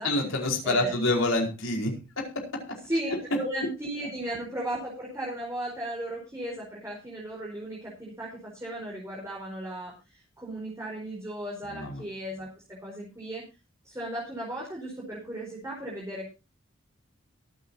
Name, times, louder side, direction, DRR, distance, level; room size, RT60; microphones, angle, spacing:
voice 1, 0.0-1.9 2.2-2.3 2.7-2.8 11.7-11.9, left 2 dB, 75° left, 1 dB, 4.9 m, -26 dB
voice 2, 0.6-1.0 2.8-13.4 13.8-16.3, right 1 dB, 15° right, -4 dB, 4.6 m, -36 dB
23.0 x 9.1 x 2.8 m, 0.29 s
head